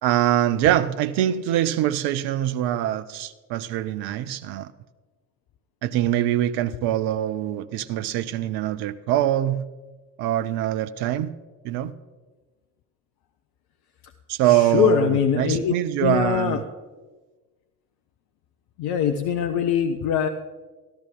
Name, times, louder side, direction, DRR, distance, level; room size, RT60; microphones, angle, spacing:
voice 1, 0.0-4.7 5.8-9.7 10.2-11.3 11.6-11.9 14.3-16.6, right 12 dB, 55° right, 13 dB, 0.7 m, -23 dB
voice 2, 14.7-15.7 16.0-16.6 18.8-20.3, left 8 dB, 50° left, 7 dB, 0.7 m, -22 dB
13.5 x 11.5 x 3.7 m, 1.3 s
figure-of-eight pair, 50°, 47 cm